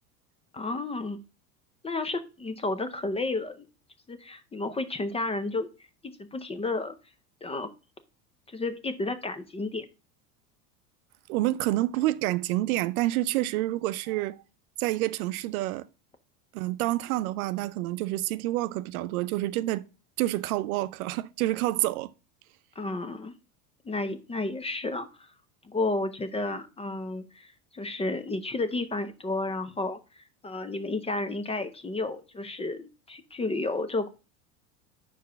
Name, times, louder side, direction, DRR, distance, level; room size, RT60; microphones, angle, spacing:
voice 1, 0.5-1.2 1.8-3.7 4.1-5.7 6.0-6.9 7.4-7.7 8.5-9.9 22.8-23.3 23.8-25.3 25.6-27.5 27.7-34.1, left 2 dB, 15° left, 0.6 m, -32 dB
voice 2, 11.3-14.4 14.8-15.9 16.5-19.8 20.2-22.1, right 16 dB, 65° right, 0.6 m, -28 dB
5.1 x 4.7 x 5.6 m
hypercardioid pair, 90°, 46 cm